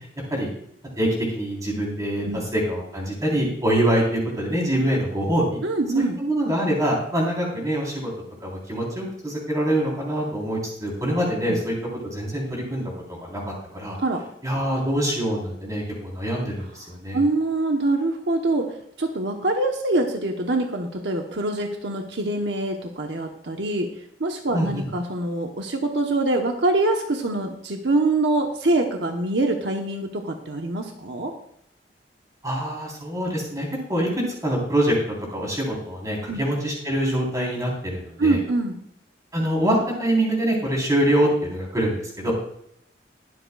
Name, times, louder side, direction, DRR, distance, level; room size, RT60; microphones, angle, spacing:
voice 1, 1.0-2.3 2.5-5.6 5.9-8.1 8.4-11.7 12.0-14.0 14.4-17.2 24.5-24.8 32.4-34.1 34.4-34.9 35.3-38.4 39.3-42.3, right 1 dB, 20° right, -3 dB, 3.9 m, -24 dB
voice 2, 5.6-6.2 11.5-11.6 14.0-14.2 17.1-23.9 24.2-31.3 36.3-36.4 38.2-38.8, right 2 dB, 75° right, 3 dB, 1.1 m, -24 dB
21.5 x 7.7 x 2.4 m, 0.72 s
head